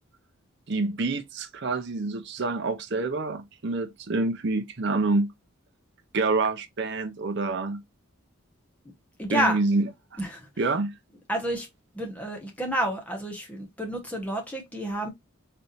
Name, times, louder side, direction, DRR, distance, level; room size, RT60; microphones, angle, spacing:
voice 1, 0.7-5.3 6.1-7.8 9.3-10.2 10.6-11.0, right 3 dB, 55° right, 0.6 m, -27 dB
voice 2, 9.2-9.6 10.2-10.5 11.3-11.7 11.9-15.1, right 1 dB, 5° left, 1.3 m, -29 dB
4.2 x 3.6 x 2.6 m
head